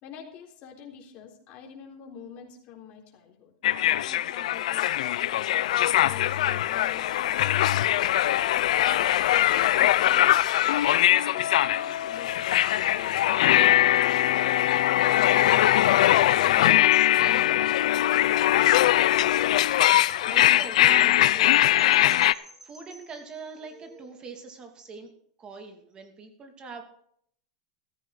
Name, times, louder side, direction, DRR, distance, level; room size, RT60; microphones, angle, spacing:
voice 1, 0.0-3.5 4.0-8.5 9.0-10.3 11.2-14.1, left 7 dB, 40° left, 1 dB, 3.7 m, -47 dB
sound 1, 3.6-22.3, left 13 dB, 75° left, 0.5 m, -21 dB
voice 2, 16.4-17.7 18.0-18.2 20.2-25.1 25.4-26.8, right 4 dB, 25° right, 5 dB, 2.6 m, -43 dB
Wind chime, 18.1-23.8, right 1 dB, 10° right, 2.8 m, -52 dB
14.5 x 14.0 x 4.1 m, 0.65 s
supercardioid pair, 140°, 4 cm